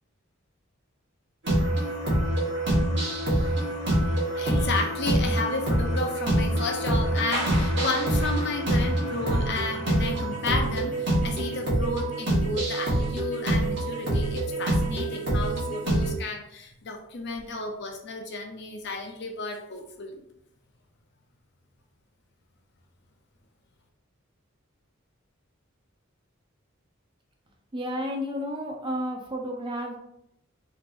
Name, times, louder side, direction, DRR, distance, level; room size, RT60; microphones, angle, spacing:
sound 1, 1.4-16.1, right 1 dB, 55° right, 1.4 m, -26 dB
voice 1, 4.4-20.3, left 3 dB, 55° left, 3 dB, 0.6 m, -32 dB
voice 2, 27.7-30.0, equal, 25° right, 1 dB, 0.6 m, -31 dB
3.6 x 3.0 x 2.5 m, 0.74 s
head